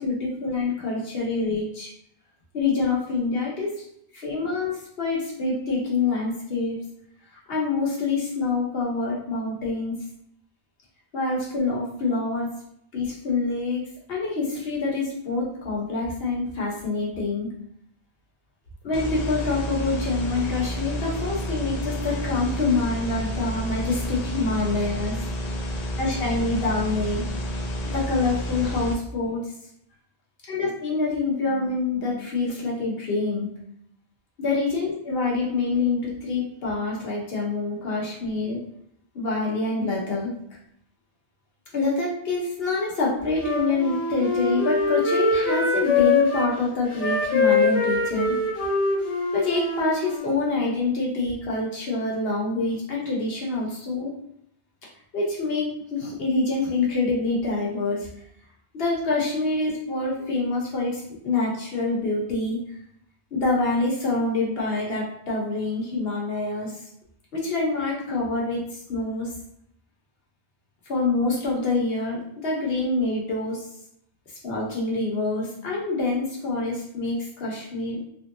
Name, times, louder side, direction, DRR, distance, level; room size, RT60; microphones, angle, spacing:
voice 1, 0.0-1.9 2.5-3.8 4.1-6.8 7.5-9.9 11.1-12.5 12.9-17.5 18.8-25.2 26.0-27.4 27.9-29.5 30.5-33.5 34.4-38.6 39.1-40.3 41.7-48.4 49.3-54.1 55.1-58.1 58.7-62.6 63.3-66.8 67.3-69.3 70.9-73.7 74.4-78.0, left 3 dB, 70° left, -3 dB, 1.2 m, -26 dB
sound 1, 18.9-28.9, equal, 50° left, 0.5 m, -30 dB
Wind instrument woodwind instrument, 43.4-46.5 46.9-50.4, left 3 dB, 90° left, 1.2 m, -23 dB
3.3 x 2.6 x 2.6 m, 0.72 s
omnidirectional pair, 1.1 m